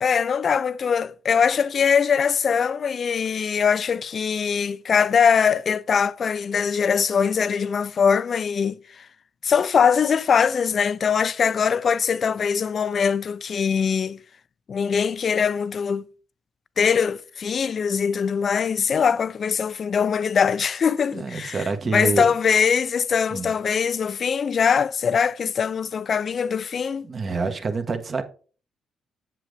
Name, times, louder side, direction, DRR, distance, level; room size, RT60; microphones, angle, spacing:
voice 1, 0.0-9.1 9.4-14.2 14.7-16.0 16.8-21.6 21.9-27.1, left 6 dB, 50° left, 0.4 m, -22 dB
voice 2, 21.1-22.3 23.3-23.5 27.0-28.2, right 4 dB, 40° right, 1.4 m, -27 dB
7.7 x 7.6 x 3.4 m
cardioid pair, 90°, 0 cm